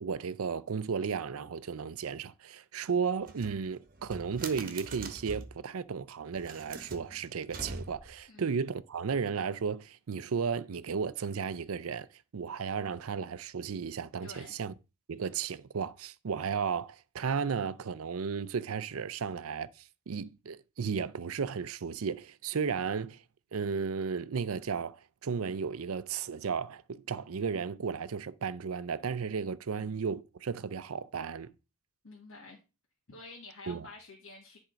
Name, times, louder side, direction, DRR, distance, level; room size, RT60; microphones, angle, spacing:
voice 1, 0.0-12.1 12.3-14.7 15.1-19.7 20.1-23.2 23.5-31.5 33.7-33.9, right 6 dB, 80° right, 0.5 m, -34 dB
sound 1, 3.2-5.6 6.3-8.2, right 3 dB, 45° right, 1.2 m, -44 dB
voice 2, 14.2-14.5 29.7-30.0 32.0-32.6 33.1-34.6, left 3 dB, 65° left, 1.6 m, -49 dB
10.5 x 3.7 x 5.1 m
head